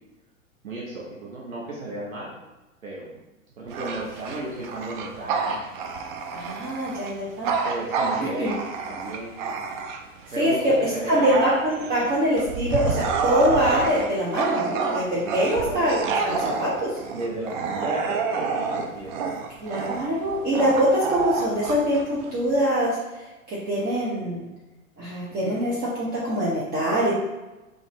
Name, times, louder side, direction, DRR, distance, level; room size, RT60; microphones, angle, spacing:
voice 1, 0.6-2.3 2.8-3.1 3.6-5.6 7.4-8.5 8.9-9.4 10.3-11.3 12.0-12.1 15.2-15.8 17.1-19.1 25.4-25.6, right 1 dB, 80° right, -5 dB, 1.1 m, -34 dB
Bark / Growling, 3.7-10.2 10.7-22.6, right 5 dB, 40° right, 0.5 m, -28 dB
voice 2, 6.3-7.5 8.4-8.5 10.4-10.7 11.1-16.9 19.6-22.9 23.5-24.4 25.0-27.1, equal, 25° right, -7 dB, 0.9 m, -24 dB
3.9 x 3.5 x 3.0 m, 1.1 s
figure-of-eight pair, 100°, 42 cm